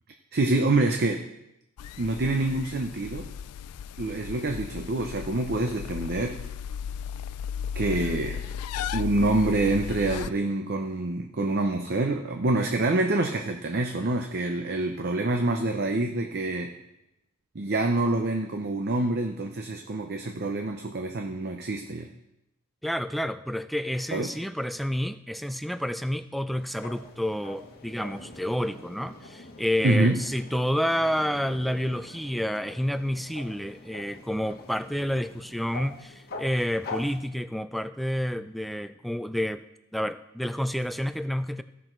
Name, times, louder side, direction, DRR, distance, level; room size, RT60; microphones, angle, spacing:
voice 1, 0.3-1.3 2.0-3.3 4.0-6.4 7.7-8.4 8.9-16.7 17.5-22.1 24.1-24.3 29.8-30.2, right 2 dB, 45° right, 4 dB, 0.7 m, -26 dB
sound 1, 1.8-10.3, left 7 dB, 85° left, 0.4 m, -35 dB
voice 2, 22.8-39.6 39.9-41.6, equal, ahead, 11 dB, 0.3 m, -29 dB
sound 2, 26.5-37.3, left 2 dB, 45° left, 1.3 m, -44 dB
16.0 x 6.2 x 4.5 m, 0.88 s
head